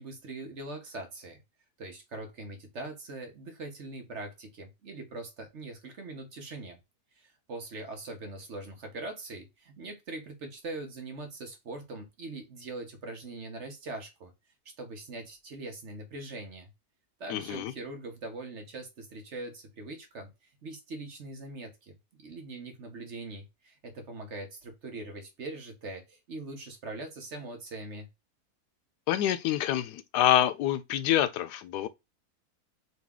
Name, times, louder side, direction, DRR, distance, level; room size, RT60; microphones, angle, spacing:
voice 1, 0.0-1.4 1.8-6.8 7.1-14.3 14.6-16.7 17.2-28.1, right 2 dB, 50° right, 1.1 m, -42 dB
voice 2, 17.3-17.7 29.1-31.9, left 12 dB, 90° left, 1.2 m, -26 dB
4.0 x 2.8 x 3.5 m
omnidirectional pair, 1.7 m